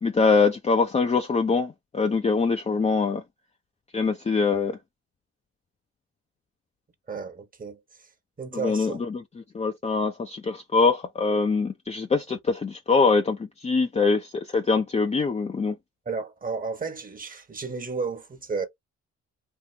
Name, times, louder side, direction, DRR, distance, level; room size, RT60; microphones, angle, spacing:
voice 1, 0.0-3.2 3.9-4.8 8.5-9.2 9.5-15.8, left 4 dB, 20° left, 0.5 m, -23 dB
voice 2, 7.1-7.8 8.4-9.0 16.0-18.7, right 4 dB, 30° right, 1.1 m, -32 dB
3.6 x 2.6 x 2.8 m
cardioid pair, 90°, 30 cm